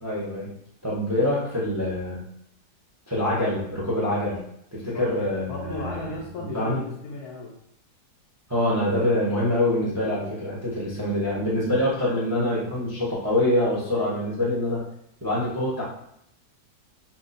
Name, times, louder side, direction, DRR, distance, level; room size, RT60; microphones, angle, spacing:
voice 1, 0.0-0.5 0.8-2.2 3.1-4.4 4.7-6.1 6.4-6.8 8.5-14.8 15.2-15.8, left 1 dB, 25° right, -7 dB, 0.3 m, -25 dB
voice 2, 5.4-7.6, left 2 dB, 70° left, -1 dB, 0.9 m, -35 dB
2.9 x 2.2 x 4.0 m, 0.74 s
omnidirectional pair, 2.0 m